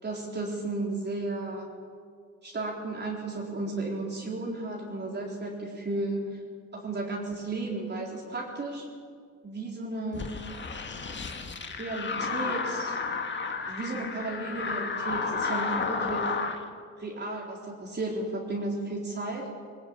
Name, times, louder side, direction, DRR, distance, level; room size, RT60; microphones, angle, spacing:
voice 1, 0.0-1.7 2.4-6.4 6.7-8.9 9.4-10.3 11.7-13.0 13.6-16.3 17.0-19.5, right 2 dB, 35° right, -2 dB, 4.1 m, -34 dB
sound 1, 10.1-16.6, left 4 dB, 40° left, 2.1 m, -32 dB
19.0 x 18.5 x 9.0 m, 2.1 s
cardioid pair, 90°, 30 cm